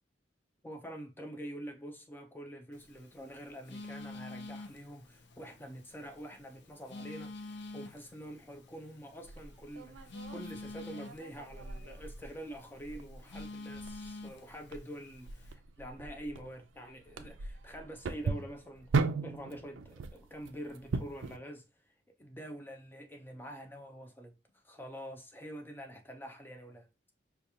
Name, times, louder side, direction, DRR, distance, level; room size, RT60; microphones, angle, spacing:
voice 1, 0.6-21.6 22.2-24.3 24.6-26.9, equal, 10° left, 0.5 m, -46 dB
Telephone, 2.7-15.5, left 2 dB, 60° left, 0.6 m, -48 dB
sound 1, 9.2-21.4, right 4 dB, 85° right, 0.4 m, -38 dB
5.1 x 2.4 x 2.8 m
head